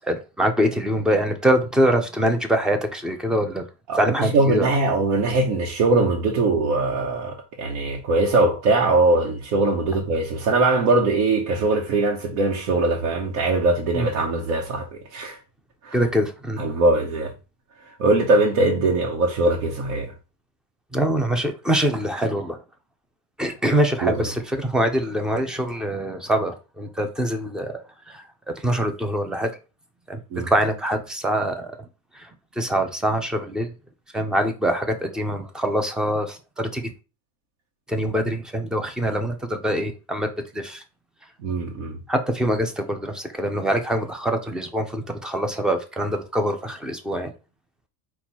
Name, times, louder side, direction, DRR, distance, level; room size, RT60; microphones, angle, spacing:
voice 1, 0.0-3.7 3.9-4.7 13.9-14.1 15.9-16.6 20.9-22.6 23.4-27.8 28.1-29.5 30.1-31.7 32.1-33.7 34.1-36.9 37.9-40.8 42.1-47.3, right 1 dB, ahead, 0.3 m, -24 dB
voice 2, 3.9-15.4 15.8-16.0 16.6-17.3 18.0-20.1 24.0-24.2 30.3-30.5 41.4-42.0, right 2 dB, 70° right, 1.1 m, -21 dB
4.3 x 2.3 x 4.1 m
supercardioid pair, 120°, 45 cm